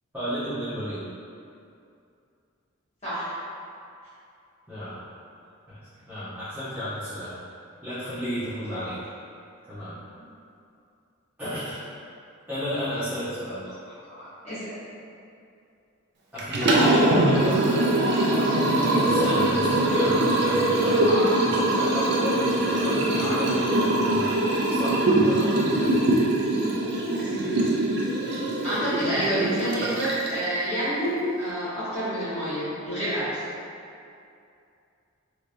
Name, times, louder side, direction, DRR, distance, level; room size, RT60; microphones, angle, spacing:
voice 1, 0.1-1.1 4.7-5.0 5.7-5.8 6.1-7.4 7.8-9.0 9.7-10.0 11.4-11.8 12.5-13.6 16.3-18.1 18.6-24.3 24.7-25.6, equal, 10° right, -17 dB, 0.8 m, -32 dB
voice 2, 3.0-3.3 14.1-14.6 27.0-27.8 28.6-33.4, equal, 35° left, -16 dB, 1.4 m, -28 dB
Liquid, 16.4-30.5, right 1 dB, 55° right, 0.5 m, -22 dB
3.3 x 2.9 x 2.6 m, 2.5 s
head